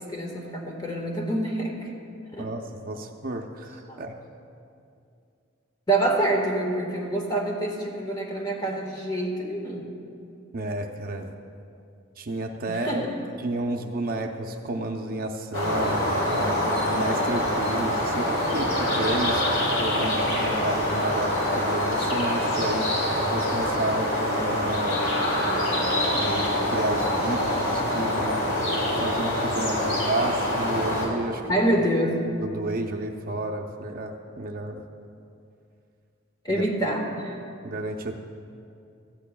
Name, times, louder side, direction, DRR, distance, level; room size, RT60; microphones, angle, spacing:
voice 1, 0.0-1.9 2.3-2.5 3.9-4.0 5.9-9.9 12.7-13.2 31.5-32.2 36.4-37.4, right 1 dB, 20° left, 0 dB, 1.5 m, -26 dB
voice 2, 2.4-4.2 10.5-11.3 12.2-13.0 13.4-19.4 19.8-22.9 23.2-25.0 26.1-28.4 28.9-31.6 32.4-34.8 36.5-36.6 37.6-38.2, right 1 dB, 45° right, 4 dB, 0.6 m, -31 dB
sound 1, 15.5-31.1, left 1 dB, 85° left, 2.8 m, -25 dB
17.0 x 13.0 x 2.3 m, 2.5 s
head